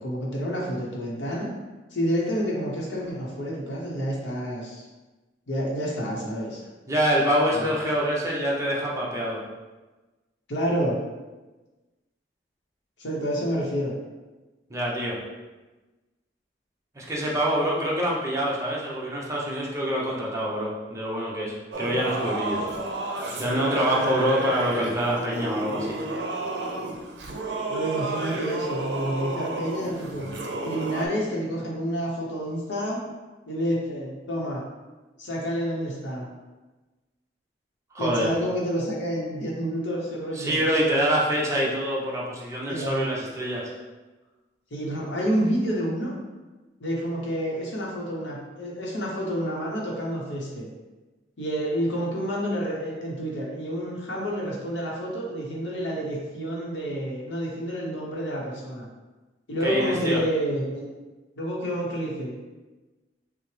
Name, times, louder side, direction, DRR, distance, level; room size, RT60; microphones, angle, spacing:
voice 1, 0.0-1.5 1.9-4.9 5.5-6.6 7.5-7.7 10.5-11.0 13.0-13.9 23.9-24.2 27.7-30.3 30.6-33.0 33.5-34.6 35.2-36.3 38.0-40.6 42.7-43.1 44.7-46.1 46.8-50.7 51.4-58.9 59.5-60.9 61.4-62.3, equal, 85° left, -3 dB, 0.8 m, -29 dB
voice 2, 6.9-9.4 14.7-15.2 16.9-22.7 23.4-26.0 37.9-38.3 40.3-43.7 59.6-60.2, equal, 15° right, -4 dB, 0.7 m, -26 dB
Singing / Musical instrument, 21.7-31.1, right 2 dB, 70° right, 0.6 m, -31 dB
5.6 x 2.0 x 3.2 m, 1.2 s
head